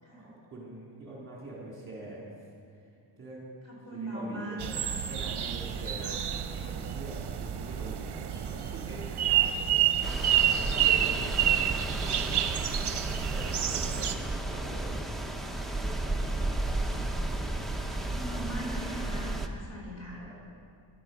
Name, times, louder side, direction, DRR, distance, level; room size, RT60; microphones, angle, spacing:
voice 1, 0.2-2.3 2.7-2.9 3.2-3.5 3.9-4.8 5.1-6.1 6.6-9.9 10.4-12.7 13.3-14.9 15.8-17.0 20.1-20.4, right 2 dB, 25° right, -5 dB, 3.8 m, -44 dB
voice 2, 3.6-4.9 5.9-6.2 13.8-14.1 17.8-20.2, right 1 dB, 35° left, -4 dB, 4.7 m, -40 dB
sound 1, 4.6-14.1, right 10 dB, 60° right, 0.8 m, -29 dB
sound 2, 10.0-19.5, right 1 dB, ahead, 0.8 m, -33 dB
15.5 x 12.0 x 6.0 m, 2.4 s
wide cardioid pair, 150°, 45 cm